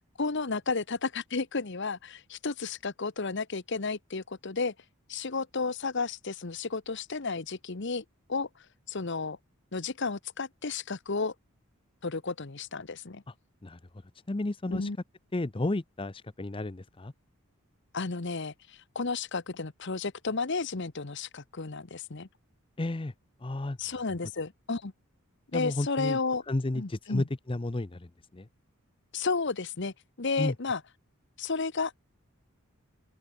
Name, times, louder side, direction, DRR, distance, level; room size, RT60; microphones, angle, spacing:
voice 1, 0.2-4.7 5.1-8.5 8.9-9.4 9.7-11.3 12.0-13.2 14.7-15.0 17.9-22.3 23.8-24.9 25.5-26.4 26.7-27.3 29.1-30.8 31.4-32.1, left 4 dB, 55° left, 1.0 m, -32 dB
voice 2, 14.3-14.9 15.3-17.1 22.8-23.1 23.4-23.8 25.5-26.2 26.5-28.5 30.4-30.5, left 2 dB, 25° left, 0.6 m, -32 dB
open air
head